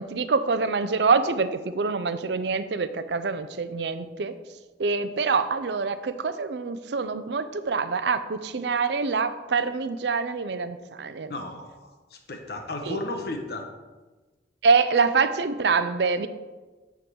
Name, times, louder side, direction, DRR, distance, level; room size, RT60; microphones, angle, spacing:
voice 1, 0.0-4.3 4.8-11.3 12.9-13.0 14.6-16.3, right 4 dB, 75° right, 11 dB, 0.5 m, -25 dB
voice 2, 11.3-13.7, left 2 dB, 60° left, 4 dB, 1.1 m, -34 dB
9.6 x 3.8 x 6.2 m, 1.2 s
head